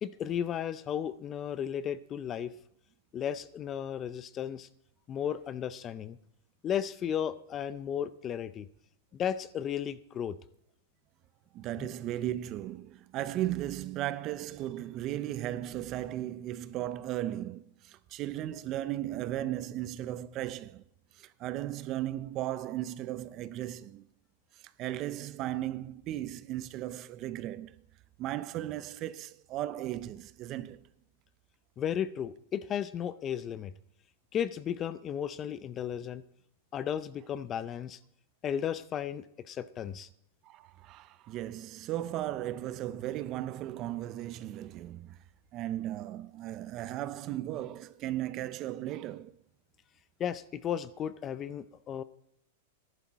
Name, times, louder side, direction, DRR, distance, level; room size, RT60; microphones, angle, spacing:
voice 1, 0.0-2.5 3.1-4.7 5.1-6.2 6.6-8.7 9.1-10.4 11.8-11.9 31.8-33.7 34.3-36.2 36.7-38.0 38.4-40.1 50.2-52.0, left 9 dB, 25° left, 0.5 m, -34 dB
voice 2, 11.5-20.8 21.2-24.1 24.6-27.8 28.2-30.8 40.4-45.2 45.5-49.3, right 13 dB, 35° right, 0.5 m, -36 dB
13.5 x 11.0 x 4.1 m
supercardioid pair, 150°, 0 cm